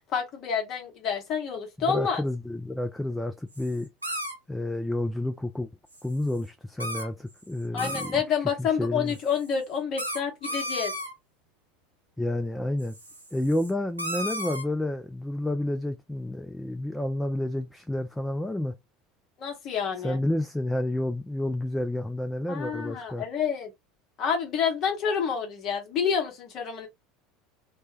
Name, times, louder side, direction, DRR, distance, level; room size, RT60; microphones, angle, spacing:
voice 1, 0.1-2.2 7.7-10.9 19.4-20.2 22.5-23.7 24.2-26.9, left 7 dB, 45° left, 0.9 m, -28 dB
voice 2, 1.9-3.9 4.5-5.7 6.0-8.2 8.6-9.2 12.2-13.0 13.3-18.7 20.0-23.2, left 1 dB, 5° left, 0.3 m, -30 dB
sound 1, 3.5-3.7 4.0-4.4 5.9-6.0 6.3-6.4 6.8-7.3 7.6-8.2 9.1-9.5 10.0-11.1 12.8-13.7 14.0-14.6, equal, 90° right, 0.6 m, -34 dB
2.1 x 2.1 x 3.1 m
figure-of-eight pair, 70°, 0 cm